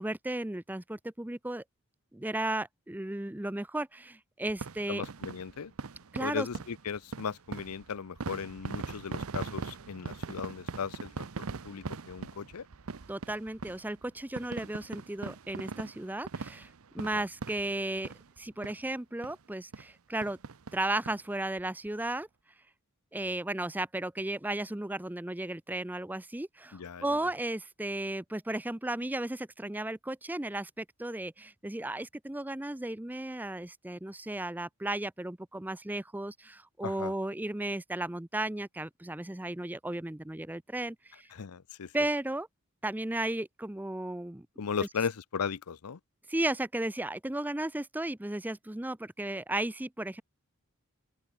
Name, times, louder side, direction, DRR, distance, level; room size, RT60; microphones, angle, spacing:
voice 1, 0.0-1.6 2.1-5.0 6.1-6.5 13.1-20.4 20.7-22.3 23.1-41.3 41.9-42.5 42.8-44.5 46.3-50.2, right 1 dB, 10° right, 0.5 m, -35 dB
sound 1, 4.5-18.4 18.6-18.8 19.2-19.3 19.7-19.9 20.2-21.2 21.6-21.7 21.9-22.0, right 4 dB, 75° right, 0.8 m, -41 dB
voice 2, 4.9-5.7 6.2-12.7 17.1-17.2 26.7-27.2 36.8-37.1 41.3-41.9 44.6-46.0, left 6 dB, 85° left, 0.6 m, -37 dB
open air
head